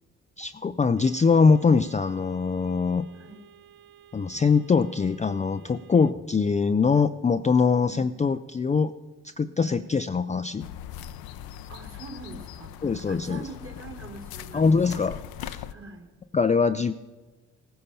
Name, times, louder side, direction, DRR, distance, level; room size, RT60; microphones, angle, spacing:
voice 1, 0.4-3.1 4.1-8.9 9.2-10.7 12.8-13.4 14.5-15.6 16.3-16.9, left 5 dB, 20° left, 10 dB, 0.5 m, -23 dB
sound 1, 1.0-6.1, right 9 dB, 70° right, 0.8 m, -54 dB
voice 2, 3.1-3.5 7.7-8.1 9.6-9.9 11.7-15.1 15.7-16.1, right 3 dB, 35° right, 5 dB, 3.2 m, -44 dB
sound 2, 10.6-15.7, left 11 dB, 70° left, 0.6 m, -40 dB
17.5 x 10.0 x 5.6 m, 1.2 s
hypercardioid pair, 40°, 38 cm